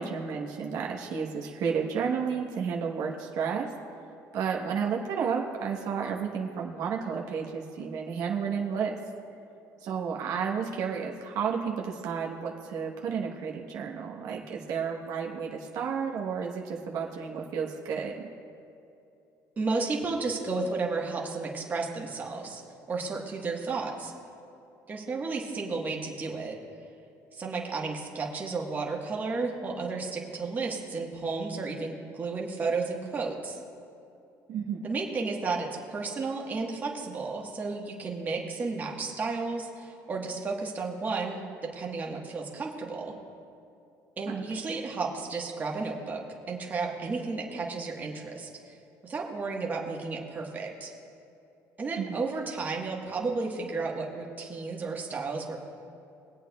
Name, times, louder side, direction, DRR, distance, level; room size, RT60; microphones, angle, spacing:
voice 1, 0.0-3.7 4.3-9.0 9.8-18.3 34.5-34.9 44.3-44.4 52.0-52.2, right 6 dB, 65° right, -1 dB, 1.1 m, -32 dB
voice 2, 19.6-22.6 22.9-24.1 24.9-26.6 27.3-33.6 34.8-41.4 41.7-43.1 44.2-46.2 46.5-48.5 49.0-50.9 51.8-55.6, right 4 dB, 25° right, -1 dB, 1.3 m, -32 dB
23.0 x 8.4 x 2.3 m, 2.7 s
cardioid pair, 130°, 6 cm